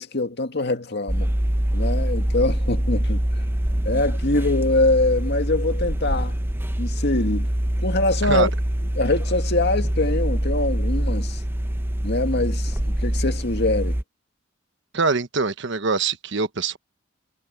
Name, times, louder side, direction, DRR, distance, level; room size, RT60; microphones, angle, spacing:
voice 1, 0.0-1.3 1.7-3.2 3.8-6.4 6.8-7.5 7.8-8.5 9.0-11.4 12.0-14.0, left 2 dB, 60° left, 2.0 m, -23 dB
sound 1, 1.1-14.0, equal, 10° right, 0.7 m, -24 dB
voice 2, 14.9-16.8, right 4 dB, 65° right, 1.2 m, -23 dB
head